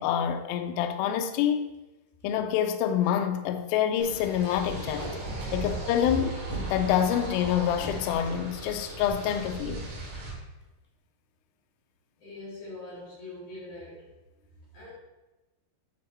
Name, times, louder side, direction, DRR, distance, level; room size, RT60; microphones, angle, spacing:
voice 1, 0.0-1.7 2.2-5.1 5.5-6.3 6.7-9.9, left 9 dB, 80° left, 2.4 m, -27 dB
Packing tape duct tape, 1.1-1.3 1.7-1.8 2.1-2.2 2.7-2.8 3.0-3.2 3.6-3.7 4.7-5.1 6.1-6.6 7.6-7.9 9.5-9.6 10.0-10.2 10.4-10.8, left 2 dB, 10° left, 1.2 m, -42 dB
sound 1, 4.0-10.3, right 2 dB, 75° right, 3.9 m, -37 dB
voice 2, 12.2-14.1 14.5-14.9, left 2 dB, 50° left, 4.1 m, -43 dB
11.5 x 4.3 x 4.2 m
omnidirectional pair, 4.4 m